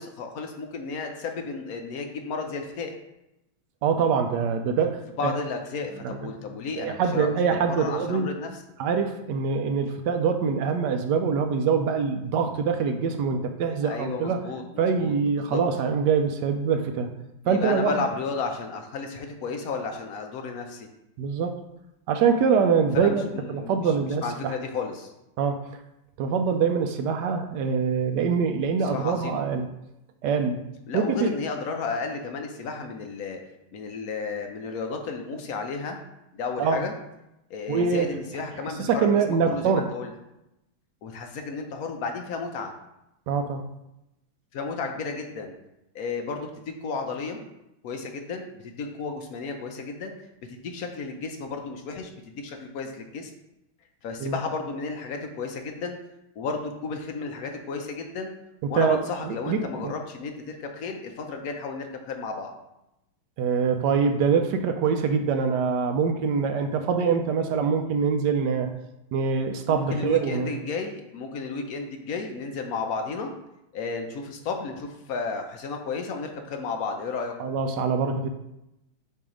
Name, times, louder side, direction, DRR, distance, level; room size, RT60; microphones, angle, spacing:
voice 1, 0.0-2.9 5.2-7.4 7.7-8.5 13.8-15.6 17.5-20.9 22.9-23.9 24.2-25.1 28.8-29.5 30.9-33.4 33.7-36.0 36.3-36.9 37.5-40.1 41.0-42.7 44.5-45.5 45.9-47.5 47.8-50.1 50.5-53.3 54.0-56.0 56.4-58.3 58.7-62.5 69.7-73.3 73.7-77.3, left 4 dB, 65° left, 4 dB, 0.9 m, -33 dB
voice 2, 3.8-5.3 6.0-6.3 6.8-8.3 8.8-14.4 14.8-17.1 17.4-17.9 21.2-21.6 22.1-24.5 25.4-25.6 26.2-29.7 30.2-30.7 30.9-31.3 36.6-36.8 37.7-38.1 38.6-39.9 43.3-43.6 54.2-54.4 58.8-59.9 63.4-68.7 69.1-70.5 77.4-78.3, right 6 dB, 75° right, 6 dB, 1.1 m, -24 dB
6.9 x 2.8 x 4.9 m, 0.89 s
omnidirectional pair, 2.1 m